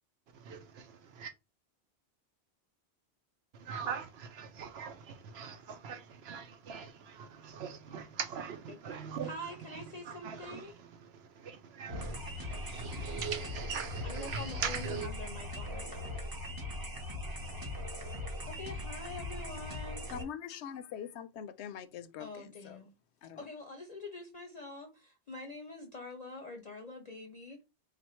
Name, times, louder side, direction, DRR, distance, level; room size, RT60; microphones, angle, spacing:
voice 1, 0.3-1.3 3.5-15.1, right 6 dB, 75° right, 0.9 m, -41 dB
voice 2, 9.2-10.7 14.0-16.2 18.4-20.1 22.2-22.9 23.4-27.6, left 2 dB, 45° left, 0.7 m, -45 dB
sound 1, 11.9-20.2, left 1 dB, 20° right, 0.8 m, -40 dB
voice 3, 20.1-22.8 23.2-23.5, left 8 dB, 80° left, 0.8 m, -43 dB
3.6 x 2.5 x 4.3 m
omnidirectional pair, 1.1 m